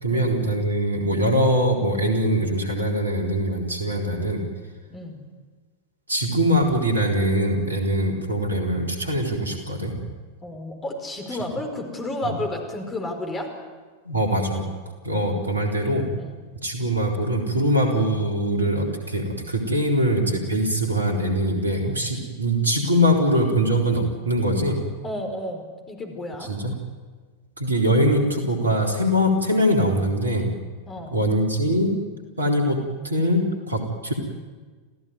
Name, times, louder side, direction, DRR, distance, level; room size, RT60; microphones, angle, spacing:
voice 1, 0.0-4.4 6.1-9.9 12.2-12.3 14.1-14.6 15.0-16.1 16.6-24.8 26.4-26.7 27.6-30.5 31.1-31.9 32.4-32.8 33.0-34.1, equal, 75° right, 2 dB, 4.0 m, -22 dB
voice 2, 4.9-5.2 10.4-13.5 16.1-16.4 25.0-26.5 30.9-31.2, left 1 dB, 20° left, 4 dB, 5.0 m, -32 dB
27.0 x 16.0 x 9.6 m, 1.4 s
figure-of-eight pair, 90°, 0 cm